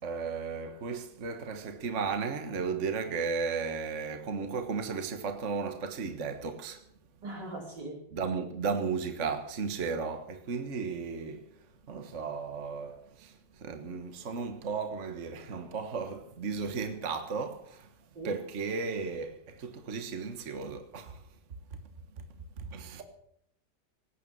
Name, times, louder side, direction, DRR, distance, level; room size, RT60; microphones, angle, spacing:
voice 1, 0.0-6.8 8.1-11.6 11.9-17.9 18.2-21.3 21.7-21.8 22.6-23.0, right 5 dB, 40° right, 1.6 m, -35 dB
voice 2, 7.2-8.0 18.2-18.3, right 2 dB, 60° right, 5.1 m, -40 dB
18.5 x 9.4 x 7.5 m
omnidirectional pair, 2.1 m